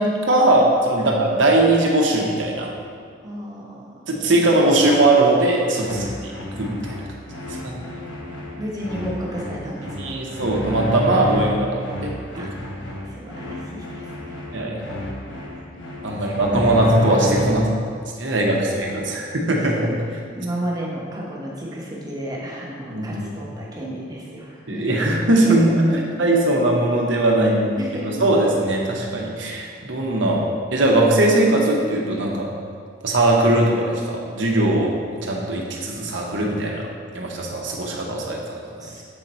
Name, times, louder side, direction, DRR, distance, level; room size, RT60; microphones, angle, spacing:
voice 1, 0.0-2.8 4.1-5.9 6.6-6.7 7.6-7.7 10.0-12.1 12.4-12.5 14.5-15.0 16.0-17.6 18.2-20.0 22.9-23.3 24.7-25.9 26.2-27.8 28.0-30.4 30.7-32.5 33.0-34.9 35.2-36.8 37.1-38.9, right 1 dB, 70° right, -1 dB, 0.9 m, -20 dB
voice 2, 3.2-4.1 5.8-6.0 7.6-7.7 8.6-10.2 12.3-12.5 13.1-14.3 15.4-15.5 16.1-16.8 18.2-19.4 20.3-24.9 25.5-26.0 27.8-28.2 38.8-39.0, equal, 20° right, -4 dB, 1.1 m, -33 dB
sound 1, 5.8-17.8, left 1 dB, 80° left, 1.0 m, -30 dB
7.3 x 4.0 x 4.3 m, 2.1 s
head